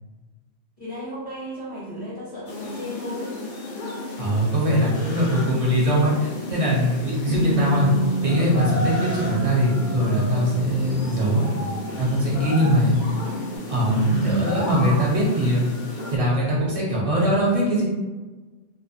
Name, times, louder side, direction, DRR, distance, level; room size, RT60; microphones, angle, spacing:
voice 1, 0.8-3.4 4.0-4.2 4.8-5.1 7.3-7.5 13.9-14.4, equal, 35° left, -9 dB, 0.8 m, -32 dB
sound 1, 2.5-16.2, left 2 dB, 60° left, 0.5 m, -33 dB
voice 2, 4.2-7.9 8.2-11.5 12.0-13.0 13.7-15.6 16.1-17.9, equal, 40° right, -5 dB, 0.5 m, -21 dB
Bass guitar, 7.3-13.6, right 3 dB, 75° right, 1.1 m, -30 dB
2.5 x 2.0 x 2.5 m, 1.2 s
omnidirectional pair, 1.2 m